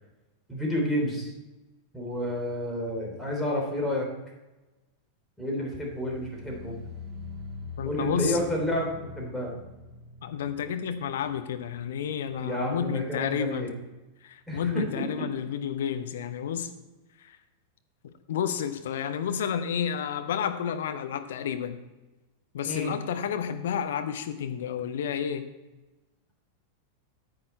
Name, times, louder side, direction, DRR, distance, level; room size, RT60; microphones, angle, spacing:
voice 1, 0.5-1.3 1.9-4.1 5.4-6.7 7.8-9.5 12.4-13.7 14.5-14.9 22.7-23.0, left 1 dB, 5° left, -2 dB, 3.1 m, -30 dB
sound 1, 5.9-12.9 13.2-13.7 14.0-14.1, left 3 dB, 30° right, 1.5 m, -44 dB
voice 2, 7.8-8.4 10.2-13.8 14.2-16.7 17.2-17.4 18.3-21.8 22.5-25.5, left 8 dB, 60° left, 9 dB, 0.9 m, -31 dB
9.7 x 8.6 x 4.3 m, 1.1 s
figure-of-eight pair, 90°, 0 cm